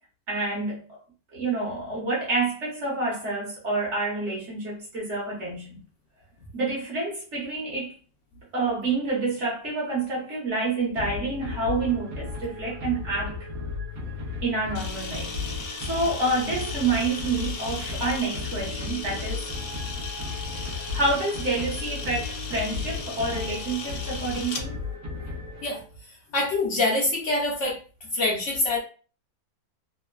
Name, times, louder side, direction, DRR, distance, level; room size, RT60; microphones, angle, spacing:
voice 1, 0.3-1.0 1.3-5.8 6.5-7.9 8.5-13.5 14.4-15.3 15.8-19.5 20.6-24.8, right 3 dB, 55° right, 1.3 m, -28 dB
sound 1, 10.9-26.0, left 4 dB, 75° right, 1.1 m, -35 dB
Camera, 14.7-24.6, left 4 dB, 85° left, 1.1 m, -37 dB
voice 2, 26.3-27.8 28.1-28.8, left 2 dB, 65° left, 0.8 m, -25 dB
3.0 x 2.1 x 2.2 m
omnidirectional pair, 1.6 m